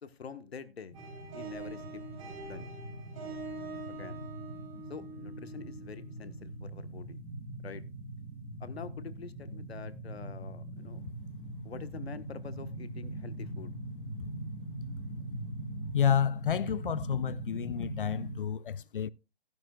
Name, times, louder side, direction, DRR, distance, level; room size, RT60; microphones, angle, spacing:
voice 1, 0.0-0.9 1.3-2.0 2.3-2.7 3.9-4.2 4.9-7.2 7.6-7.8 8.6-11.1 11.6-13.8, left 6 dB, 90° left, 1.3 m, -46 dB
sound 1, 0.9-18.3, right 1 dB, 5° left, 1.2 m, -42 dB
sound 2, 0.9-6.4, right 3 dB, 35° right, 3.4 m, -45 dB
voice 2, 15.9-19.1, left 8 dB, 60° left, 0.5 m, -30 dB
15.5 x 11.0 x 2.3 m
hypercardioid pair, 170°, 30 cm